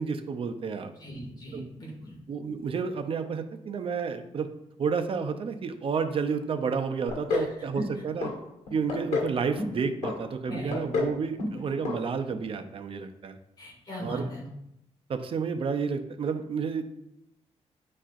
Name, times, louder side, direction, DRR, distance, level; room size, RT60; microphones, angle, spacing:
voice 1, 0.0-0.9 1.5-1.7 2.3-4.5 4.8-8.3 8.7-13.4 14.0-14.3 15.1-16.8, right 5 dB, 50° right, 8 dB, 0.6 m, -30 dB
voice 2, 1.0-2.2 7.3-7.5 10.5-10.8 13.6-14.4, equal, 35° left, -3 dB, 2.3 m, -39 dB
sound 1, 7.1-7.5 7.8-8.3 8.7-9.3 9.6-10.1 10.5-11.1 11.4-11.6 11.8-12.0 12.3-12.4, left 4 dB, 80° left, 1.5 m, -29 dB
10.0 x 4.3 x 2.5 m, 0.82 s
cardioid pair, 120°, 12 cm